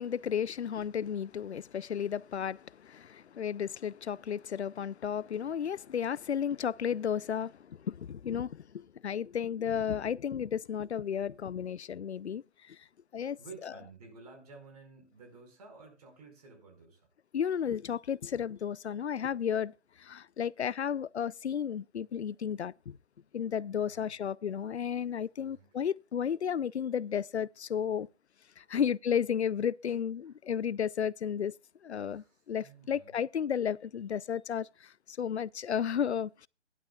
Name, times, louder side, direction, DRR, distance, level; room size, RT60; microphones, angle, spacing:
voice 1, 0.0-12.8 13.1-13.7 17.3-23.0 23.3-28.1 28.6-31.5 31.8-36.5, left 8 dB, 70° left, 0.6 m, -33 dB
voice 2, 13.4-17.0 23.8-24.1 25.4-25.7 28.6-28.9 29.9-30.0 32.1-33.2, right 4 dB, 35° right, 4.8 m, -52 dB
15.5 x 11.5 x 2.3 m
figure-of-eight pair, 160°, 35 cm